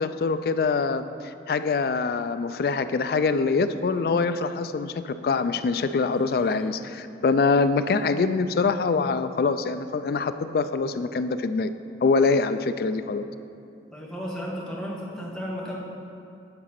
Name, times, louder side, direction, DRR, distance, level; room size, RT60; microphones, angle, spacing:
voice 1, 0.0-11.7 12.0-13.2, left 4 dB, 55° left, 11 dB, 0.3 m, -24 dB
Burping eructation, 5.8-6.6, equal, 50° right, 1.6 m, -50 dB
voice 2, 13.9-15.8, equal, 5° left, -5 dB, 1.2 m, -33 dB
8.8 x 4.1 x 5.9 m, 2.6 s
head